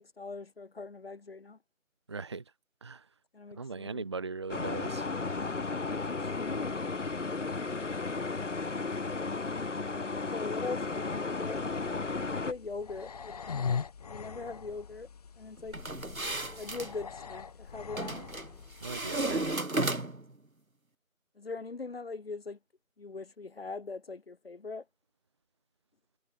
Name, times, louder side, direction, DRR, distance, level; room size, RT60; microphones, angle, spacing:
voice 1, 0.0-1.6 3.3-4.0 5.9-6.9 9.3-9.7 10.1-11.6 12.2-13.6 14.1-15.1 15.4-15.8 16.6-18.2 21.4-22.6 23.0-24.8, left 4 dB, 45° left, 4.7 m, -41 dB
voice 2, 2.1-2.4 2.8-3.0 3.5-5.1 18.8-19.4, right 4 dB, 20° right, 1.4 m, -39 dB
sound 1, 4.5-12.5, left 3 dB, 60° left, 1.9 m, -34 dB
sound 2, 11.5-19.6, left 6 dB, 30° left, 5.4 m, -41 dB
sound 3, 15.7-16.9 18.0-18.5 18.8-20.3, right 2 dB, 85° right, 4.7 m, -33 dB
figure-of-eight pair, 165°, 41 cm